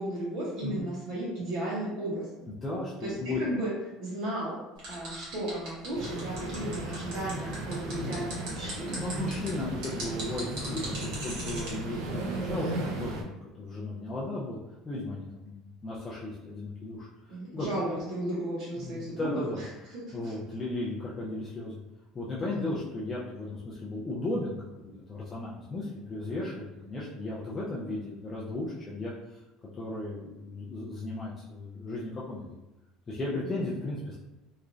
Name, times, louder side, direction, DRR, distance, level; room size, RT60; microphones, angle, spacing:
voice 1, 0.0-2.5 3.0-3.1 3.4-3.7 4.0-4.5 4.9-9.0 17.3-19.4 19.9-20.3 22.5-22.6 33.4-33.5, right 1 dB, 45° right, -7 dB, 0.8 m, -34 dB
voice 2, 2.6-3.4 6.6-6.9 7.9-8.5 8.9-14.6 14.8-15.6 15.8-17.7 18.8-19.6 20.1-21.8 22.1-29.1 29.8-32.5 33.1-34.2, left 2 dB, 15° left, -7 dB, 0.4 m, -35 dB
sound 1, 4.8-11.7, right 1 dB, 70° right, 1.2 m, -39 dB
sound 2, 5.9-13.2, right 2 dB, 90° right, 0.5 m, -36 dB
3.0 x 2.3 x 2.5 m, 0.96 s
cardioid pair, 175°, 0 cm